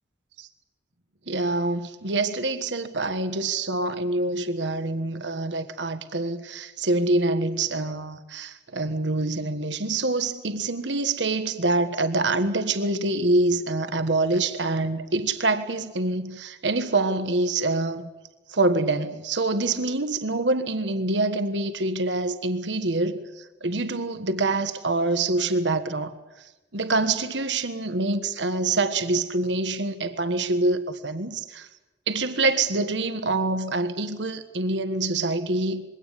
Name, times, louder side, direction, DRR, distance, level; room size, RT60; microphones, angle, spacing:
voice 1, 1.3-18.1 18.5-23.2 23.6-26.1 26.7-31.7 32.1-35.8, right 2 dB, 85° right, 1.5 m, -25 dB
22.0 x 17.0 x 9.8 m
head